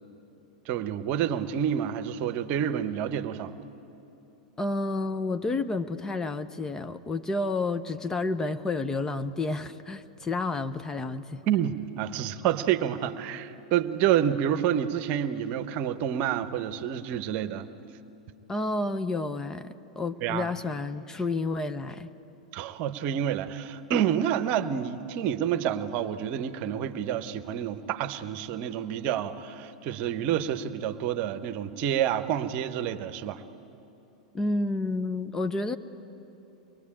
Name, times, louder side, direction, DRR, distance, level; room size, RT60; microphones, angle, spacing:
voice 1, 0.6-3.5 11.5-17.7 20.2-20.5 22.5-33.4, right 10 dB, 45° right, 11 dB, 1.0 m, -28 dB
voice 2, 4.6-11.4 18.5-22.1 34.3-35.8, left 3 dB, 15° left, 10 dB, 0.8 m, -30 dB
24.0 x 21.5 x 8.7 m, 2.9 s
figure-of-eight pair, 95°, 4 cm